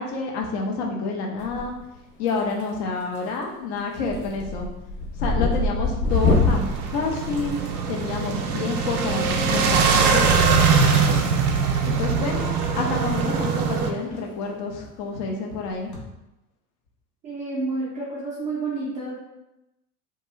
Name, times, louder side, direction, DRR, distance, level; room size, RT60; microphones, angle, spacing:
voice 1, 0.0-1.7 2.2-4.7 5.2-7.6 7.9-11.2 12.0-12.4 12.7-16.0, left 4 dB, 45° left, 0 dB, 0.6 m, -29 dB
sound 1, 1.4-2.0 2.3-2.8 3.2-3.4 3.8-8.2 9.5-9.7 10.9-11.7 12.0-12.2 12.7-12.8 13.1-13.2 13.6-13.8 14.0-14.1 15.7-15.9, left 3 dB, 65° left, 0.9 m, -25 dB
sound 2, 6.1-13.9, right 5 dB, 70° right, 0.5 m, -22 dB
voice 2, 17.2-19.1, right 3 dB, 20° right, -7 dB, 0.3 m, -29 dB
2.3 x 2.2 x 3.0 m, 0.94 s
figure-of-eight pair, 85°, 47 cm